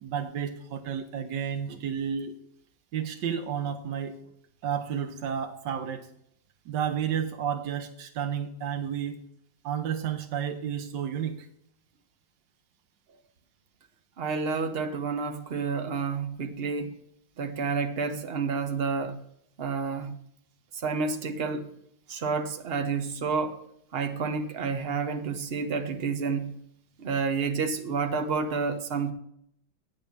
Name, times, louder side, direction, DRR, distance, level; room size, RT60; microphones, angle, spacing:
voice 1, 0.0-2.3 2.9-4.2 4.6-6.1 6.7-9.2 9.6-11.4, right 8 dB, 85° right, 1.4 m, -31 dB
voice 2, 14.2-17.0 17.4-19.2 19.6-20.1 20.8-21.7 22.1-23.6 23.9-26.5 27.0-29.1, right 5 dB, 45° right, 1.0 m, -29 dB
8.6 x 6.5 x 7.2 m
omnidirectional pair, 1.8 m